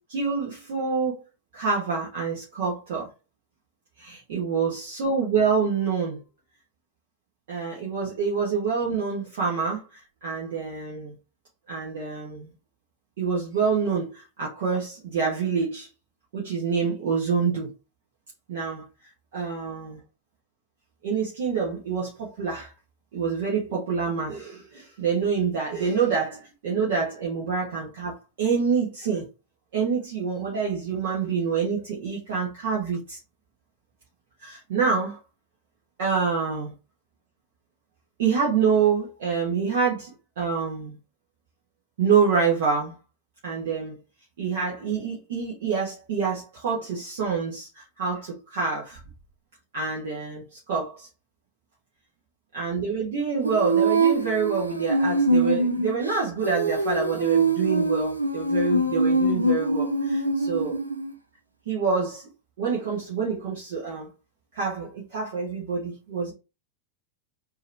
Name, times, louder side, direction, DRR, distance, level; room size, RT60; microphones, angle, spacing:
voice 1, 0.1-1.2 1.5-3.1 4.0-6.2 7.5-11.1 11.7-12.5 13.2-15.9 16.3-17.7 18.5-18.8 19.3-20.0 21.0-22.7 23.1-29.3 29.7-33.2 34.4-35.2 36.0-36.7 38.2-40.1 40.4-41.0 42.0-42.9 43.4-44.0 44.4-49.0 49.7-51.1 52.5-60.8 61.7-62.3 62.6-64.1 64.5-66.3, right 5 dB, 55° right, 1.4 m, -26 dB
Female singing, 53.4-61.1, right 2 dB, 85° right, 0.6 m, -24 dB
4.5 x 3.0 x 3.3 m
figure-of-eight pair, 90°, 0 cm